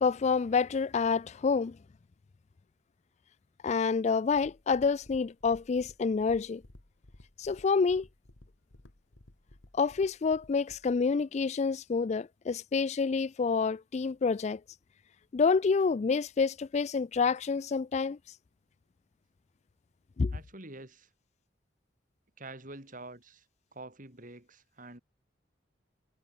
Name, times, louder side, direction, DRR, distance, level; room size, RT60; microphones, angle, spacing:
voice 1, 0.0-1.7 3.6-6.6 7.4-8.1 9.8-14.6 15.3-18.2 20.2-20.3, left 5 dB, 40° left, 0.3 m, -28 dB
sound 1, 4.3-11.0, left 1 dB, 75° left, 2.0 m, -56 dB
voice 2, 20.3-21.1 22.4-23.4 23.7-25.0, right 2 dB, 45° right, 5.0 m, -47 dB
head